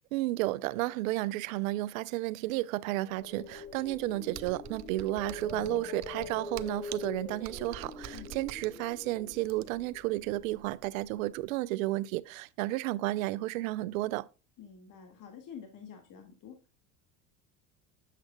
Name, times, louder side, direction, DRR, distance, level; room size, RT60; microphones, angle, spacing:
voice 1, 0.1-14.3, right 18 dB, 85° right, 0.5 m, -32 dB
strange wind, 3.0-11.1, left 4 dB, 15° left, 1.3 m, -44 dB
Computer keyboard, 4.3-9.9, right 11 dB, 45° right, 0.6 m, -47 dB
voice 2, 14.6-16.6, left 7 dB, 50° left, 2.0 m, -48 dB
8.2 x 7.4 x 2.3 m
supercardioid pair, 90°, 40 cm